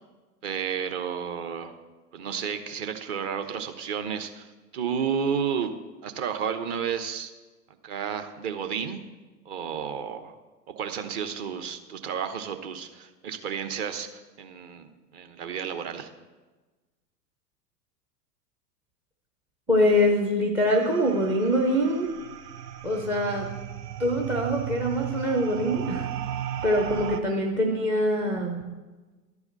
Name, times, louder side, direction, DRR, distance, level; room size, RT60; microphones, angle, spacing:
voice 1, 0.4-1.7 2.1-7.3 7.8-9.0 9.4-10.4 10.8-16.1, right 7 dB, 40° right, 6 dB, 1.0 m, -32 dB
voice 2, 19.7-22.1 22.8-23.5 24.0-26.1 26.6-28.6, equal, 5° right, 3 dB, 0.4 m, -24 dB
sound 1, 20.7-27.2, right 10 dB, 75° right, 0.8 m, -36 dB
11.5 x 4.8 x 7.7 m, 1.2 s
figure-of-eight pair, 100°, 49 cm